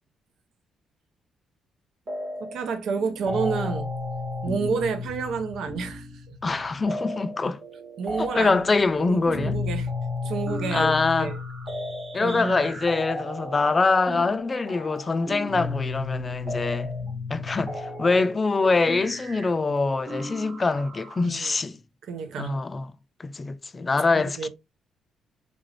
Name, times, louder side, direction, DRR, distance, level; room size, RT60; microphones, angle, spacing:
sound 1, 2.1-2.7 3.0-21.2, left 2 dB, 45° right, 1.3 m, -34 dB
voice 1, 2.4-3.9 4.4-6.1 8.0-8.6 8.9-9.9 10.2-11.4 12.2-12.8 21.2-21.5 22.1-22.6 24.2-24.5, right 5 dB, 75° right, 0.6 m, -29 dB
voice 2, 6.4-7.6 8.2-9.6 10.7-11.3 12.1-16.9 17.3-21.8 22.4-22.9 23.2-24.5, left 3 dB, 30° left, 0.4 m, -24 dB
3.7 x 2.5 x 3.1 m
cardioid pair, 90°, 0 cm